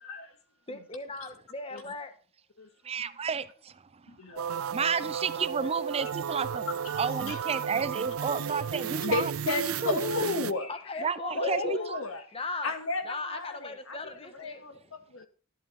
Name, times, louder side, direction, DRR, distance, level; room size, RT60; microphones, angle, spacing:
voice 1, 0.0-0.3 1.7-1.8 2.6-2.7 4.1-4.7 6.3-6.5 7.3-7.4 9.0-11.0 11.3-12.4 12.6-15.3, left 3 dB, 75° left, 2.1 m, -33 dB
voice 2, 0.7-2.1 10.7-12.0 12.3-12.7 13.0-14.9, left 3 dB, 30° left, 1.5 m, -38 dB
voice 3, 2.8-3.8 4.7-6.7 7.0-10.0 11.0-12.0, right 5 dB, 30° right, 0.5 m, -32 dB
sound 1, 4.4-10.5, right 8 dB, 85° right, 0.5 m, -33 dB
11.5 x 11.5 x 4.1 m
head